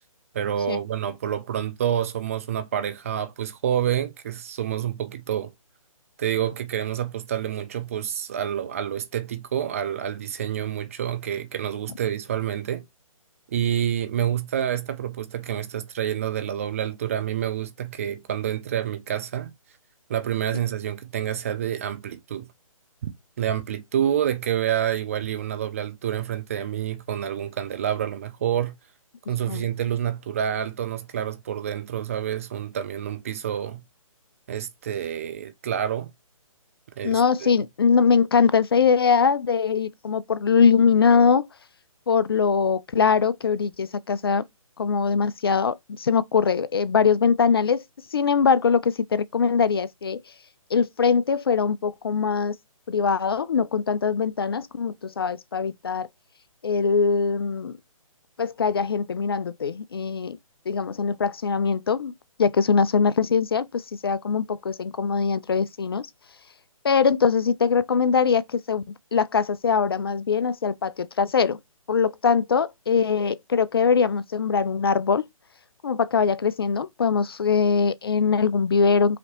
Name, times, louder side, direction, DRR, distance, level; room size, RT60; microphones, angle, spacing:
voice 1, 0.3-5.5 6.2-12.9 13.5-19.5 20.1-22.5 23.0-23.1 23.4-28.8 29.3-33.8 34.5-36.1 37.0-37.5, right 10 dB, 25° right, 0.5 m, -28 dB
voice 2, 37.0-41.5 42.1-44.4 44.8-47.8 48.1-50.2 50.7-52.6 52.9-56.1 56.6-57.7 58.4-60.4 60.7-62.1 62.4-66.1 66.8-68.8 69.1-71.6 71.9-75.2 75.8-79.2, left 5 dB, 45° left, 0.4 m, -22 dB
4.9 x 2.9 x 2.9 m
figure-of-eight pair, 140°, 18 cm